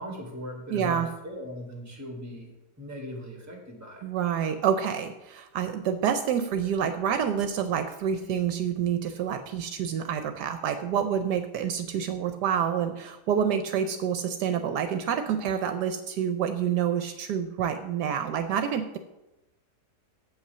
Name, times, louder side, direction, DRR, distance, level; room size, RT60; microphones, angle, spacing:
voice 1, 0.0-2.5 2.8-4.0, equal, 10° right, 1 dB, 1.9 m, -39 dB
voice 2, 0.7-1.1 4.0-19.0, right 8 dB, 75° right, 8 dB, 1.2 m, -28 dB
8.1 x 5.7 x 6.7 m, 0.98 s
omnidirectional pair, 1.9 m